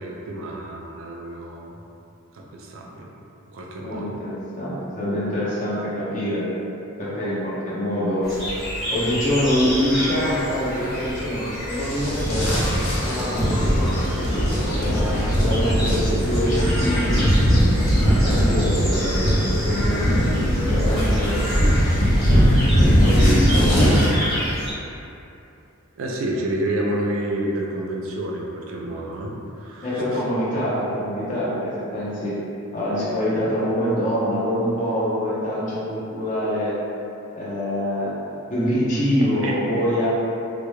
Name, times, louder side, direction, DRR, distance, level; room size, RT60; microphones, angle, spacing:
voice 1, 0.0-1.7 2.3-3.1 3.5-4.1 26.0-29.3 29.6-30.0 39.4-39.6, right 1 dB, 65° right, -1 dB, 0.4 m, -29 dB
voice 2, 3.8-6.4 7.0-8.3 8.9-12.6 13.0-17.2 18.0-21.4 23.0-23.8 29.8-31.6 31.9-32.4 32.7-36.8 37.3-40.1, equal, 40° left, -8 dB, 0.6 m, -25 dB
sound 1, 8.2-24.7, equal, ahead, 0.8 m, -30 dB
sound 2, 11.7-24.1, equal, 80° left, 0.6 m, -20 dB
2.2 x 2.0 x 3.0 m, 2.8 s
head